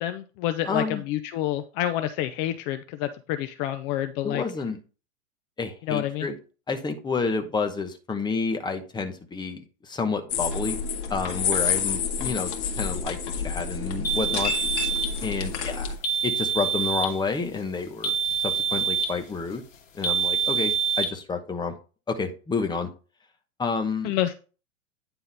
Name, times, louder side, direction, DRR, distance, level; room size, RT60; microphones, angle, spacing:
voice 1, 0.0-4.4 5.9-6.3 24.0-24.3, left 12 dB, 45° left, 10 dB, 0.7 m, -28 dB
voice 2, 0.6-1.0 4.2-4.8 5.6-6.4 6.7-10.8 11.1-12.5 12.8-13.2 13.4-14.5 15.2-15.9 16.2-18.1 18.4-19.6 19.9-21.8 22.1-22.9 23.6-24.1, left 4 dB, 10° left, 5 dB, 1.1 m, -29 dB
sound 1, 10.3-16.0, left 6 dB, 60° left, 1.9 m, -29 dB
sound 2, 14.0-15.2 16.0-17.2 18.0-19.2 20.0-21.1, right 6 dB, 85° left, 1.8 m, -26 dB
9.5 x 3.9 x 4.0 m, 0.35 s
hypercardioid pair, 115°, 39 cm